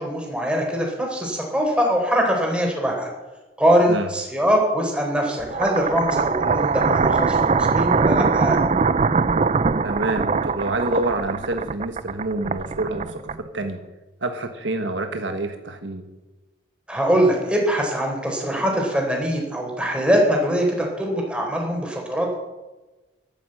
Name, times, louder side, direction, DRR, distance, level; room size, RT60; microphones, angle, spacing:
voice 1, 0.0-3.1 3.6-8.6 16.9-22.4, equal, 5° right, 0 dB, 4.1 m, -22 dB
sound 1, 5.4-13.7, right 4 dB, 35° right, 0.4 m, -22 dB
voice 2, 9.8-13.8 14.2-16.1, right 2 dB, 75° right, 6 dB, 1.4 m, -27 dB
12.5 x 12.5 x 7.8 m, 1.1 s
head